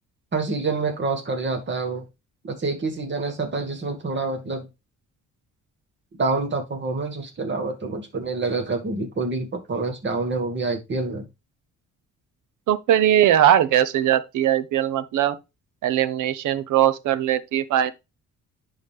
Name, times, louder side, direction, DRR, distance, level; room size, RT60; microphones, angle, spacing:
voice 1, 0.3-2.0 2.4-4.7 6.2-11.3, right 3 dB, 40° right, 2.1 m, -27 dB
voice 2, 12.7-15.4 15.8-17.9, right 11 dB, 80° right, 0.9 m, -20 dB
10.5 x 4.2 x 3.4 m
cardioid pair, 90°, 30 cm